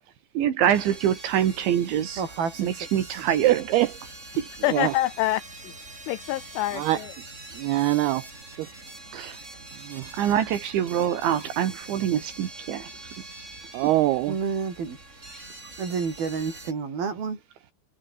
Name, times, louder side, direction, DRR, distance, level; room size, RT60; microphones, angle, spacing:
voice 1, 0.4-2.2 2.6-3.6 4.4-4.5 9.1-9.4 10.1-12.9, right 10 dB, 70° right, 4.5 m, -25 dB
sound 1, 0.7-16.7, right 2 dB, 15° right, 5.1 m, -44 dB
voice 2, 2.2-2.9 14.3-15.0 15.8-17.4, right 5 dB, 50° right, 7.4 m, -29 dB
voice 3, 3.4-3.9 4.7-4.9 6.8-7.0 7.6-8.2 8.6-8.7 9.8-10.1 13.7-14.4, right 16 dB, 85° right, 2.2 m, -23 dB
voice 4, 4.6-5.7 6.1-7.1, left 16 dB, 80° left, 3.3 m, -26 dB
omnidirectional pair, 5.6 m